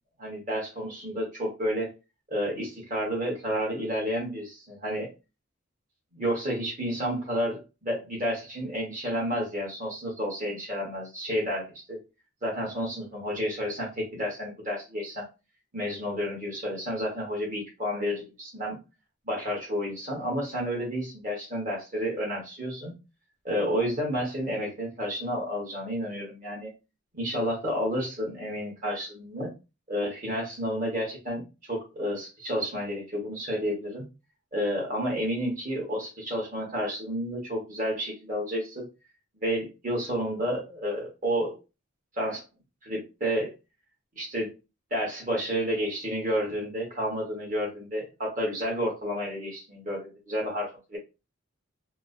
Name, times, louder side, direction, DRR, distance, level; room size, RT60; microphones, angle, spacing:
voice 1, 0.2-1.9 2.3-5.1 6.1-12.0 12.4-15.2 15.7-18.8 19.3-22.9 23.4-26.7 27.1-29.5 29.9-34.0 34.5-38.8 39.4-41.6 42.1-42.4 42.8-43.5 44.2-44.5 44.9-51.0, equal, 40° right, -3 dB, 1.4 m, -30 dB
4.6 x 2.1 x 2.7 m, 0.27 s
head